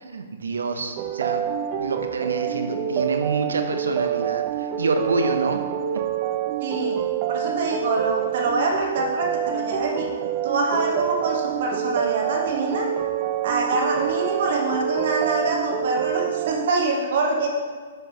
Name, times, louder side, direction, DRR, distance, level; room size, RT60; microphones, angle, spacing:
voice 1, 0.0-1.4 1.8-5.6, right 3 dB, 80° right, 6 dB, 0.6 m, -27 dB
sound 1, 1.0-16.7, right 9 dB, 40° right, 0.4 m, -27 dB
voice 2, 6.6-7.0 7.3-10.1 10.4-12.9 13.4-17.5, right 3 dB, 60° right, 1 dB, 1.2 m, -25 dB
7.7 x 5.2 x 2.9 m, 1.5 s
hypercardioid pair, 125°, 0 cm